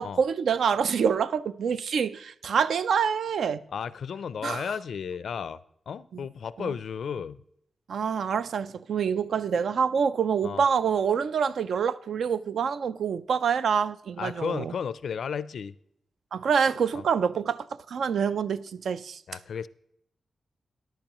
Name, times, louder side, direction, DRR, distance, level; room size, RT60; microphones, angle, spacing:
voice 1, 0.0-3.6 4.4-4.7 6.6-6.7 7.9-14.7 16.3-19.2, right 6 dB, 80° right, 0.4 m, -26 dB
voice 2, 3.7-5.6 5.9-7.4 10.4-10.6 14.2-15.7 16.9-17.0 19.3-19.7, left 7 dB, 75° left, 0.4 m, -33 dB
14.0 x 10.5 x 3.0 m
wide cardioid pair, 120°, 0 cm